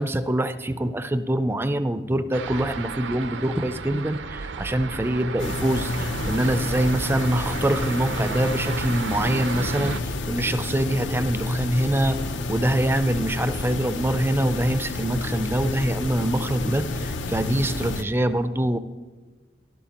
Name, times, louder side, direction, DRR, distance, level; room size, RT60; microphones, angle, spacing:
voice 1, 0.0-12.2 12.5-18.8, right 1 dB, 10° right, 11 dB, 0.4 m, -24 dB
sound 1, 2.3-10.0, right 5 dB, 70° right, 0.5 m, -33 dB
sound 2, 5.4-18.0, left 2 dB, 75° left, 0.7 m, -29 dB
15.5 x 13.0 x 2.9 m, 1.3 s
head